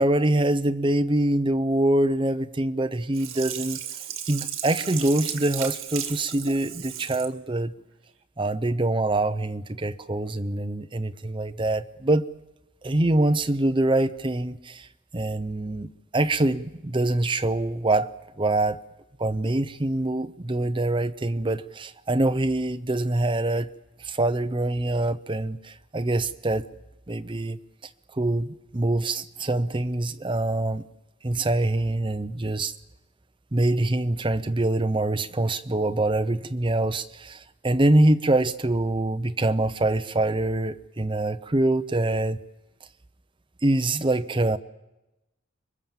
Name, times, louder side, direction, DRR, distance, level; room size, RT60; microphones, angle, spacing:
voice 1, 0.0-3.8 4.3-7.7 8.4-12.3 12.8-14.9 15.1-18.8 19.2-23.7 24.0-26.6 27.1-27.6 28.1-30.9 31.2-32.7 33.5-42.4 43.6-44.6, right 2 dB, 25° right, 10 dB, 0.7 m, -24 dB
Sink (filling or washing), 3.1-7.3 7.8-7.9, right 10 dB, 80° right, 2.0 m, -34 dB
24.5 x 22.0 x 7.4 m, 0.99 s
head